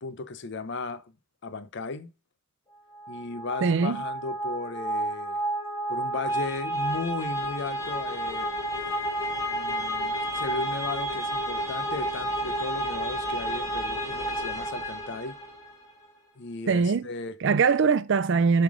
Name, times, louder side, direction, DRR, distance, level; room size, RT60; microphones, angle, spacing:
voice 1, 0.0-1.0 1.4-2.1 3.1-5.4 5.9-8.5 9.4-15.4 16.4-17.4, left 3 dB, 55° left, 0.6 m, -36 dB
sound 1, 2.9-15.7, right 1 dB, 15° left, 1.4 m, -31 dB
voice 2, 3.6-4.0 16.7-17.1 17.4-18.6, right 5 dB, 60° right, 0.4 m, -22 dB
7.2 x 3.5 x 4.8 m
head